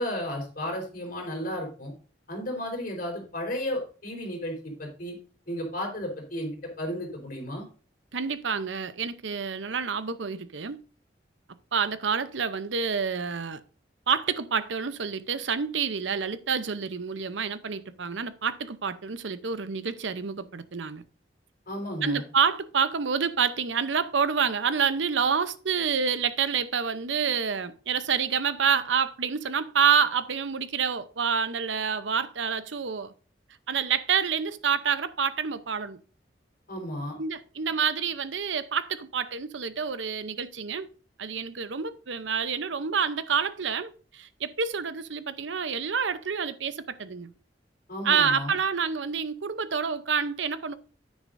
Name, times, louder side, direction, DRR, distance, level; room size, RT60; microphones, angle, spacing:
voice 1, 0.0-1.9 2.3-4.5 4.8-5.2 5.5-7.6 21.7-22.2 36.7-37.1 47.9-48.5, left 1 dB, 50° left, 4.2 m, -33 dB
voice 2, 8.1-10.8 11.7-13.6 14.1-21.0 22.0-33.1 33.7-36.0 37.2-40.9 41.2-47.3 48.0-50.7, right 6 dB, 85° right, 0.7 m, -28 dB
9.7 x 9.6 x 2.6 m
head